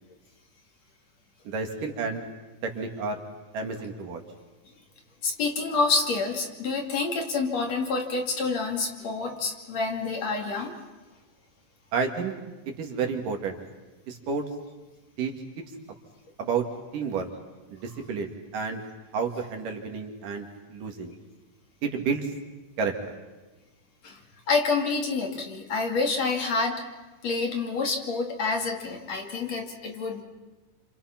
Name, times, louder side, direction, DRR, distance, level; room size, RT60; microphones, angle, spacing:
voice 1, 1.5-2.3 2.6-3.2 3.5-4.2 11.9-12.4 12.8-13.6 14.1-14.4 15.2-15.7 16.4-16.6 16.9-17.3 17.7-18.8 19.1-21.2 21.8-22.3 22.8-22.9, right 5 dB, 65° right, 3 dB, 3.8 m, -30 dB
voice 2, 5.2-10.8 24.0-24.2 24.5-26.8 27.2-30.2, left 4 dB, 50° left, 2 dB, 3.4 m, -28 dB
29.5 x 27.5 x 5.9 m, 1.2 s
omnidirectional pair, 4.1 m